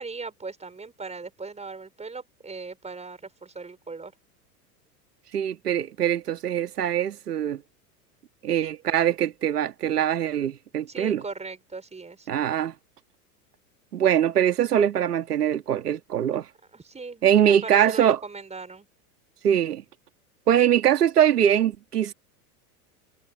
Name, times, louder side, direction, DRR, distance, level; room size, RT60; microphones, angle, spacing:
voice 1, 0.0-4.1 10.9-12.3 16.7-18.9, right 4 dB, 15° right, 5.3 m, -38 dB
voice 2, 5.3-7.6 8.4-11.2 12.3-12.7 13.9-16.5 17.2-18.2 19.4-19.8 20.5-22.1, right 10 dB, 90° right, 2.0 m, -22 dB
hypercardioid pair, 95°, 46 cm